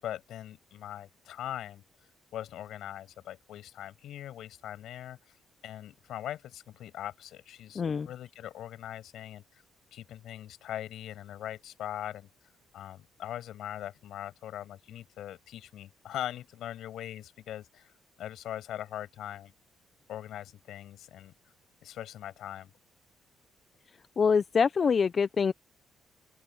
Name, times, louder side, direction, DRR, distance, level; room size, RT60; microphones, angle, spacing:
voice 1, 0.0-1.8 2.3-5.4 5.6-9.6 9.9-12.3 12.7-17.9 18.2-19.5 20.1-21.3 21.8-22.7, left 12 dB, 75° left, 7.2 m, -41 dB
voice 2, 7.7-8.1 24.2-25.5, left 6 dB, 40° left, 0.6 m, -25 dB
open air
cardioid pair, 110°, 0 cm